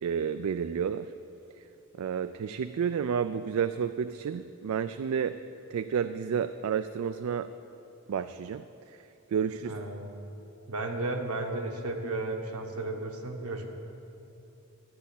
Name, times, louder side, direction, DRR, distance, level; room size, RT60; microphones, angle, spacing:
voice 1, 0.0-1.1 2.0-5.4 5.7-7.5 8.1-9.0 9.3-9.7, right 7 dB, 70° right, 11 dB, 0.3 m, -31 dB
voice 2, 9.6-10.1 10.7-13.7, right 2 dB, 90° right, 3 dB, 1.3 m, -34 dB
12.5 x 7.2 x 8.4 m, 2.8 s
head